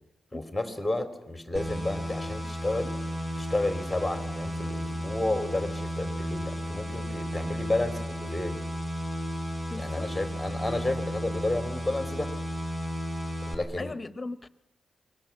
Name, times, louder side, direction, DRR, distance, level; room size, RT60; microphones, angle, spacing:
voice 1, 0.3-3.0 3.4-8.6 9.7-12.3 13.5-14.0, left 2 dB, ahead, 3.6 m, -31 dB
sound 1, 1.6-13.6, equal, 15° right, 5.4 m, -33 dB
voice 2, 9.7-10.1 13.8-14.5, left 3 dB, 25° left, 1.0 m, -38 dB
29.0 x 23.0 x 7.5 m
cardioid pair, 95°, 0 cm